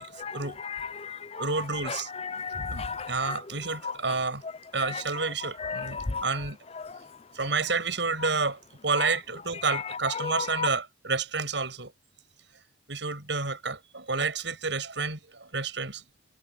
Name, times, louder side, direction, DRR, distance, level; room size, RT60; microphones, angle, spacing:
voice 1, 0.0-0.6 1.4-2.1 2.7-4.4 4.7-6.6 7.3-11.9 12.9-16.0, right 4 dB, 80° right, 6.8 m, -30 dB
voice 2, 0.6-1.4 1.9-3.4 3.8-3.9 4.9-5.0 5.6-6.3 6.8-7.0 9.0-9.1 9.7-9.8 10.2-10.7, left 5 dB, 35° left, 0.7 m, -33 dB
head